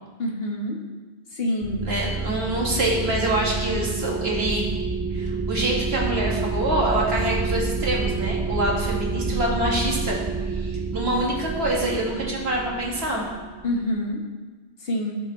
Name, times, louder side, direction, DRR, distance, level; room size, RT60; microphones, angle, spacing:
voice 1, 0.2-0.8 1.3-1.9 13.6-14.2 14.8-15.2, left 1 dB, 65° left, 0 dB, 1.7 m, -26 dB
sound 1, 1.6-13.9, right 4 dB, 30° right, 0.4 m, -28 dB
voice 2, 1.8-4.6 5.1-10.2 10.5-13.2, right 1 dB, 75° right, -4 dB, 2.4 m, -26 dB
17.5 x 6.6 x 3.3 m, 1.3 s
omnidirectional pair, 1.1 m